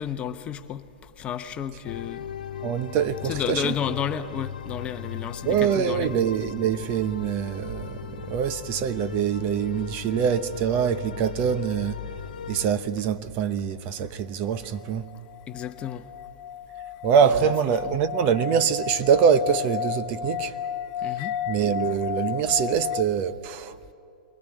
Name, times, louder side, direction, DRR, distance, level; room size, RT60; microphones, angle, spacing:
voice 1, 0.0-2.3 3.2-6.1 15.5-16.0 17.3-17.5 17.8-18.0 21.0-21.3, left 8 dB, 25° left, 0.9 m, -32 dB
sound 1, 1.9-12.7, left 8 dB, 80° left, 1.1 m, -37 dB
voice 2, 2.6-3.7 5.4-12.0 12.5-15.1 17.0-20.5 21.5-23.8, right 7 dB, 40° right, 0.9 m, -24 dB
sound 2, 14.6-23.0, left 9 dB, 45° left, 1.2 m, -33 dB
22.5 x 17.0 x 9.3 m
hypercardioid pair, 125°, 5 cm